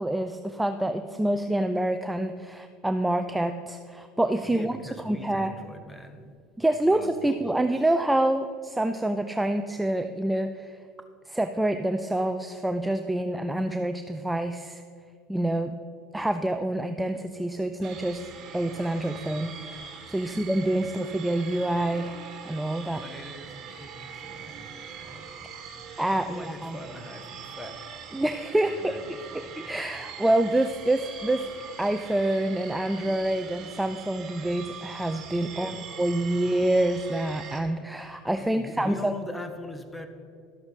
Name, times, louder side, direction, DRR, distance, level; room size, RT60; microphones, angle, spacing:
voice 1, 0.0-4.7 5.0-5.5 6.6-10.8 11.3-14.8 15.3-15.8 16.1-23.0 26.0-26.8 28.1-28.9 29.3-31.5 31.8-35.7 36.0-39.1, right 1 dB, 5° right, 8 dB, 0.5 m, -27 dB
voice 2, 4.4-6.4 6.8-7.8 20.2-20.4 22.9-25.4 26.1-27.8 28.6-29.6 35.5-35.8 38.4-40.1, left 1 dB, 10° left, 8 dB, 1.2 m, -42 dB
sound 1, 17.8-37.6, right 6 dB, 50° right, 1.9 m, -43 dB
12.5 x 7.9 x 5.0 m, 2.3 s
supercardioid pair, 100°, 0 cm